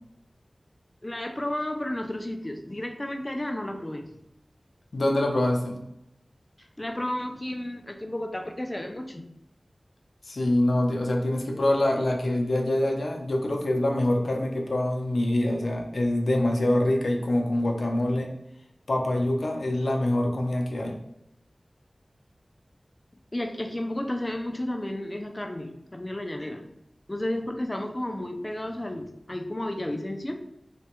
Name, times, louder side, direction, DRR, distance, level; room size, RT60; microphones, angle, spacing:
voice 1, 1.0-4.1 6.6-9.3 23.3-26.6 27.1-30.4, left 1 dB, 25° left, 4 dB, 0.3 m, -32 dB
voice 2, 4.9-5.8 10.2-18.3 18.9-21.0, left 1 dB, 80° left, 1 dB, 0.5 m, -25 dB
3.3 x 2.2 x 2.9 m, 0.80 s
wide cardioid pair, 70°, 0 cm